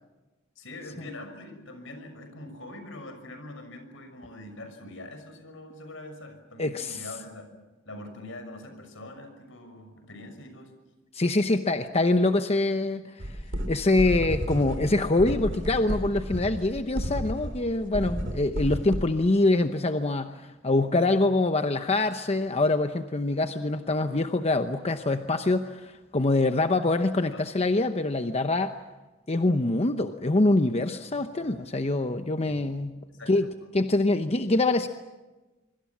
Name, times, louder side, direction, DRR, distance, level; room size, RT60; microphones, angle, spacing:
voice 1, 0.6-7.5 7.8-10.7 27.3-27.4 32.4-32.6 33.1-33.5, left 1 dB, 75° left, 7 dB, 6.3 m, -43 dB
voice 2, 6.6-7.0 11.1-13.4 13.7-28.7 29.3-32.9 33.3-33.5 33.7-34.9, left 2 dB, 30° left, 8 dB, 0.9 m, -25 dB
sound 1, 13.2-19.0, equal, 65° right, 3.4 m, -32 dB
25.5 x 24.5 x 7.3 m, 1.1 s
head